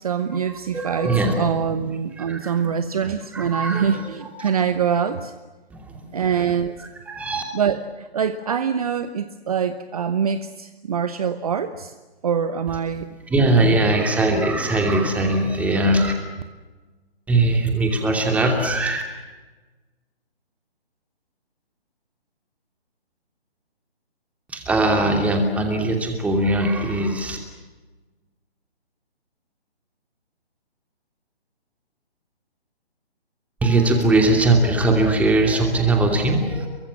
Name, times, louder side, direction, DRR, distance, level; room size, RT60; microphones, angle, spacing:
voice 1, 0.0-1.1 1.4-5.3 6.1-6.7 7.5-11.9 12.2-13.1 13.5-13.8, right 7 dB, 35° right, 11 dB, 1.1 m, -24 dB
voice 2, 0.7-1.8 2.2-2.7 3.3-4.0 4.4-4.5 5.7-6.3 7.1-7.4 13.3-16.1 17.3-19.0 24.5-27.4 33.6-36.7, right 2 dB, 5° right, 3 dB, 2.8 m, -20 dB
28.0 x 24.0 x 7.4 m, 1.2 s
figure-of-eight pair, 140°, 32 cm